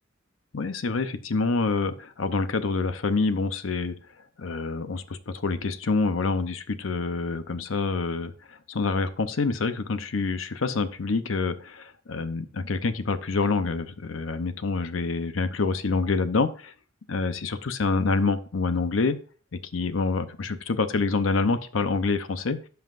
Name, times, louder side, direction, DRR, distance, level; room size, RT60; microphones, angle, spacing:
voice 1, 0.5-3.9 4.4-16.7 17.1-19.2 19.7-22.6, left 4 dB, 80° left, 11 dB, 0.7 m, -27 dB
16.0 x 5.6 x 2.5 m, 0.39 s
head